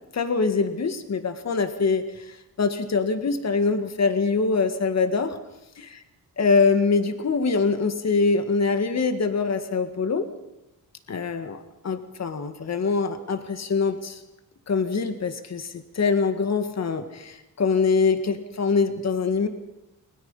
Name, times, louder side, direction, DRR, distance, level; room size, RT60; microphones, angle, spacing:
voice 1, 0.1-5.4 5.8-6.0 6.4-10.3 11.1-14.2 14.7-19.5, left 4 dB, 50° left, 8 dB, 2.0 m, -24 dB
30.0 x 21.5 x 5.6 m, 0.93 s
wide cardioid pair, 115°, 34 cm